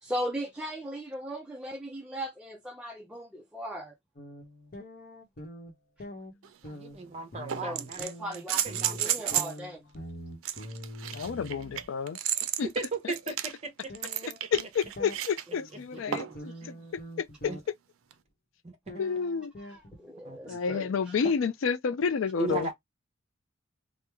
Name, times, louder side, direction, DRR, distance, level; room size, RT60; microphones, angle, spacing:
voice 1, 0.0-3.9 7.6-9.8 16.1-16.2 19.6-21.2, right 1 dB, 5° right, 0.4 m, -38 dB
sound 1, 4.2-5.7 6.0-11.8 13.9-15.2 16.4-17.6 18.9-20.3, equal, 45° left, 0.8 m, -44 dB
sound 2, 6.4-6.5 7.5-9.6 10.4-15.4 16.1-16.5 18.1-18.2, right 11 dB, 90° right, 0.4 m, -32 dB
voice 2, 6.6-8.0 8.5-9.4 12.7-14.5 16.2-16.3 16.6-16.9 17.5-17.6 18.6-19.0 20.2-20.6 22.4-22.7, right 3 dB, 30° right, 0.9 m, -37 dB
voice 3, 11.1-12.2 12.6-12.7 14.5-16.5 17.2-17.3 19.0-19.5 20.5-22.7, left 6 dB, 75° left, 0.4 m, -29 dB
3.0 x 2.0 x 3.3 m
head